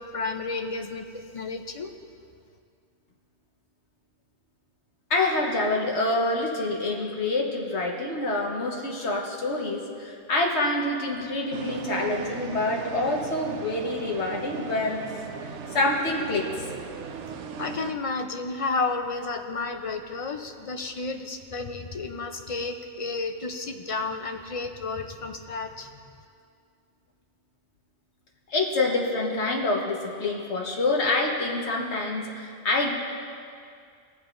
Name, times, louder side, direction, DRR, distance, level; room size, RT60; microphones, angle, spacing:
voice 1, 0.0-1.9 17.6-25.9, left 3 dB, 50° left, 5 dB, 0.4 m, -32 dB
voice 2, 5.1-15.0 15.4-16.5 28.5-32.9, left 2 dB, 75° left, -1 dB, 1.5 m, -26 dB
sound 1, 11.5-17.9, right 6 dB, 90° right, 0.9 m, -37 dB
20.5 x 7.2 x 2.5 m, 2.3 s
omnidirectional pair, 1.2 m